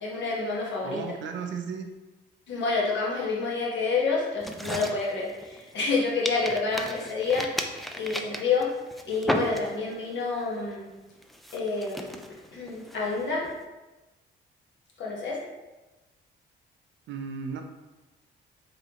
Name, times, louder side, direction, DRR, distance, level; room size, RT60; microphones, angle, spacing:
voice 1, 0.0-1.0 2.5-7.5 7.9-8.7 9.1-10.9 11.5-12.1 12.5-13.5 15.0-15.4, left 4 dB, 65° left, -4 dB, 1.2 m, -28 dB
voice 2, 0.8-1.9 17.1-17.6, right 6 dB, 70° right, 5 dB, 0.5 m, -35 dB
sound 1, 4.4-5.9 6.3-10.0 10.4-10.7 11.2-13.6, equal, ahead, 0.3 m, -34 dB
3.8 x 3.2 x 2.9 m, 1.1 s
cardioid pair, 90°, 20 cm